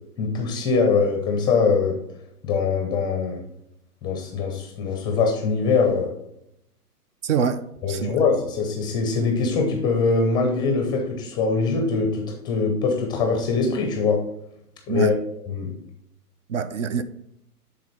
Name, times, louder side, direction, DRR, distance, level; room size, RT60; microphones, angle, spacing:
voice 1, 0.2-2.0 2.4-3.4 4.0-6.1 7.8-14.2 14.9-15.1 15.5-15.7, left 4 dB, 10° left, 0.5 m, -22 dB
voice 2, 7.2-8.2 14.9-15.2 16.5-17.0, right 6 dB, 50° right, 0.6 m, -25 dB
10.0 x 3.9 x 4.2 m
hypercardioid pair, 125°, 47 cm